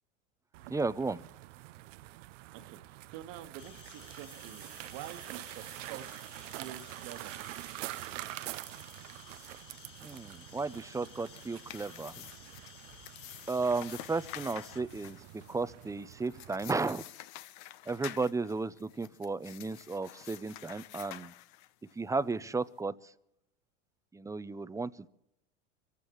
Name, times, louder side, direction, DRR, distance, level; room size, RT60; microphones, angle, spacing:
sound 1, 0.5-17.0, right 17 dB, 75° right, 0.6 m, -46 dB
voice 1, 0.7-1.2 10.0-12.1 13.5-15.2 15.5-17.0 17.9-21.3 22.0-23.1 24.1-25.1, right 3 dB, 10° right, 16 dB, 0.5 m, -34 dB
voice 2, 2.5-6.2 6.5-7.4, right 11 dB, 60° right, 8 dB, 1.6 m, -47 dB
sound 2, 3.6-14.8, left 9 dB, 80° left, 3.8 m, -55 dB
sound 3, 11.0-21.9, left 14 dB, 60° left, 1.0 m, -49 dB
25.5 x 15.0 x 3.1 m, 0.77 s
hypercardioid pair, 95°, 37 cm